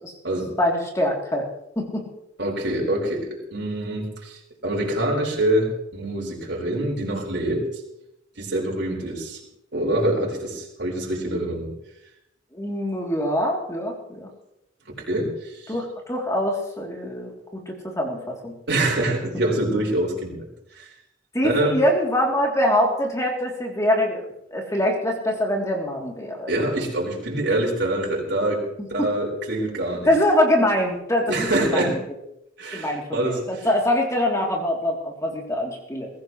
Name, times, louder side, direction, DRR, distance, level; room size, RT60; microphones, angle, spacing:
voice 1, 0.6-1.4 1.7-2.1 12.5-14.3 15.7-18.5 21.3-24.2 24.5-26.5 29.0-29.1 30.0-32.0 32.7-36.1, left 1 dB, 15° left, -1 dB, 3.2 m, -24 dB
voice 2, 2.4-7.7 8.4-9.4 9.7-11.7 15.1-15.7 18.7-20.4 20.7-20.8 21.4-21.8 26.5-28.6 28.9-30.1 31.3-32.0 32.6-33.7, right 1 dB, 65° right, -2 dB, 4.9 m, -25 dB
22.0 x 15.5 x 3.2 m, 0.84 s
head